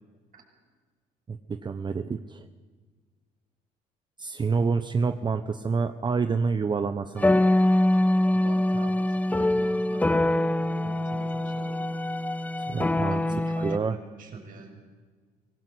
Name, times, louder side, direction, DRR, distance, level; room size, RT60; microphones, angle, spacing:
voice 1, 1.3-2.5 4.2-7.4 12.7-13.2 13.6-14.0, right 5 dB, 25° right, 10 dB, 0.9 m, -28 dB
sound 1, 7.2-13.8, left 1 dB, 10° left, 0.7 m, -24 dB
voice 2, 8.3-11.8 12.7-14.8, right 4 dB, 55° right, 2 dB, 6.8 m, -44 dB
24.5 x 19.0 x 8.1 m, 1.5 s
cardioid pair, 110°, 17 cm